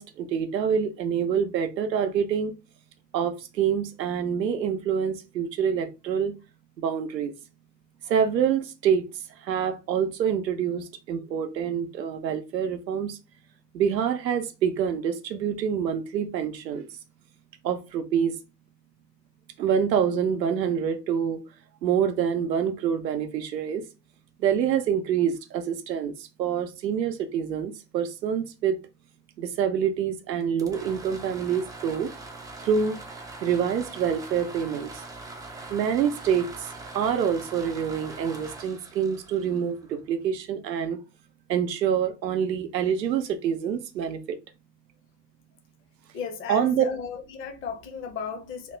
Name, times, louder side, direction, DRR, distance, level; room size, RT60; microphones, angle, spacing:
voice 1, 0.0-2.5 3.1-6.4 6.8-7.3 8.1-9.1 9.4-13.2 13.7-16.9 17.6-18.4 19.6-21.4 21.8-23.8 24.4-28.8 29.4-32.1 32.6-33.0 33.4-35.0 35.7-41.0 41.5-44.4 46.5-46.8, right 8 dB, 90° right, 0.6 m, -26 dB
sound 1, 30.4-40.2, right 3 dB, 10° right, 0.3 m, -42 dB
voice 2, 46.1-48.8, left 6 dB, 25° left, 0.6 m, -35 dB
2.9 x 2.0 x 3.2 m
hypercardioid pair, 80°, 49 cm